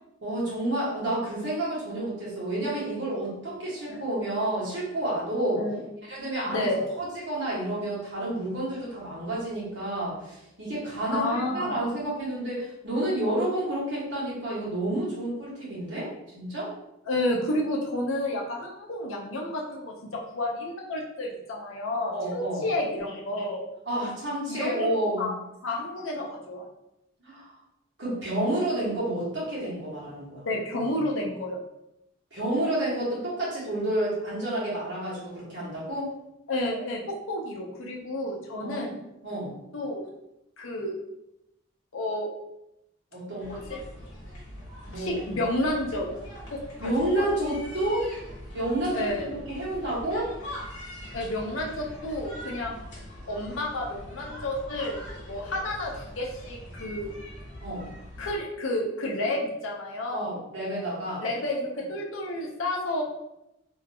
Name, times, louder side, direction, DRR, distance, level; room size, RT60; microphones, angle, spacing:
voice 1, 0.2-5.6 6.0-6.7 7.0-16.7 22.1-22.7 23.8-25.4 27.2-27.5 28.0-30.5 32.3-36.1 38.6-39.6 43.1-43.5 44.9-45.1 46.8-48.1 48.5-50.3 57.6-57.9 60.1-61.2, right 1 dB, 60° right, -7 dB, 1.3 m, -30 dB
voice 2, 6.5-6.8 11.1-11.8 17.1-23.6 24.5-24.9 25.2-25.3 25.6-26.7 30.4-31.6 36.5-38.9 39.7-40.0 40.6-40.9 41.9-42.3 43.5-43.8 44.9-46.1 46.5-47.3 48.9-49.3 51.1-52.8 53.3-55.0 55.3-57.1 58.2-60.3 61.2-63.0, left 1 dB, 80° left, -1 dB, 0.7 m, -30 dB
sound 1, 43.4-58.4, equal, 60° left, 1.0 m, -43 dB
2.8 x 2.5 x 2.7 m, 0.85 s
head